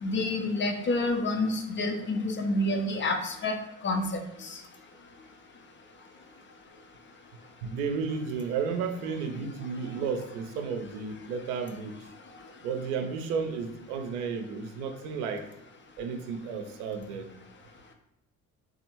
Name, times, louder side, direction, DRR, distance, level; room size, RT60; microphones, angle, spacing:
voice 1, 0.0-3.5 3.8-4.1 4.5-4.6, left 2 dB, 25° left, 4 dB, 0.4 m, -28 dB
voice 2, 7.6-12.0 12.6-15.5 16.0-17.3, right 5 dB, 70° right, 6 dB, 0.6 m, -33 dB
3.3 x 2.4 x 2.9 m, 0.85 s
figure-of-eight pair, 50°, 46 cm